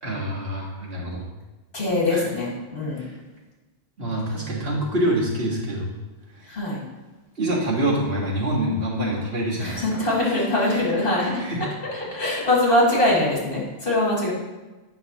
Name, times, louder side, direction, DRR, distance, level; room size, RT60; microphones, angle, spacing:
voice 1, 0.0-1.2 2.1-2.2 3.0-3.1 4.0-5.9 6.4-6.5 7.4-9.8 10.7-10.8 11.2-11.6, right 1 dB, 65° right, -4 dB, 1.8 m, -26 dB
voice 2, 1.7-3.0 6.5-6.8 9.6-11.4 11.9-14.3, left 1 dB, 60° left, -5 dB, 2.3 m, -22 dB
8.5 x 5.8 x 2.9 m, 1.2 s
omnidirectional pair, 1.1 m